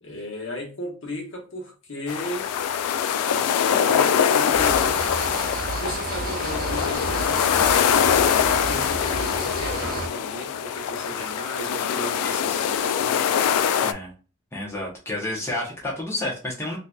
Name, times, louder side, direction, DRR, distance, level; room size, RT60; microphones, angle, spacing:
voice 1, 0.0-2.5 3.2-5.1 5.7-13.2, left 1 dB, 60° left, 1.1 m, -35 dB
sound 1, 2.1-13.9, left 8 dB, 90° left, 0.3 m, -23 dB
sound 2, 4.5-10.1, right 4 dB, 40° right, 0.4 m, -32 dB
voice 2, 12.2-12.7 13.8-14.1 14.5-16.8, left 1 dB, 10° left, 0.8 m, -31 dB
3.8 x 2.7 x 2.3 m
head